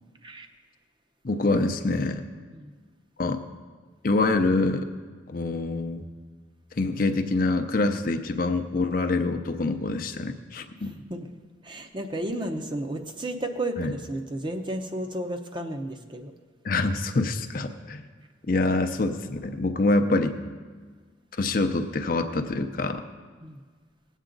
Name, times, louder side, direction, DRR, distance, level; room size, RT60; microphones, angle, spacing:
voice 1, 1.2-2.2 3.2-3.4 4.0-4.9 5.3-6.0 6.8-10.9 13.8-13.9 16.6-18.0 18.5-20.4 21.4-23.0, left 2 dB, 45° left, 6 dB, 0.6 m, -25 dB
voice 2, 10.8-11.3 11.6-16.3 23.4-23.6, right 1 dB, 25° right, 5 dB, 0.7 m, -33 dB
18.5 x 8.1 x 3.9 m, 1.5 s
head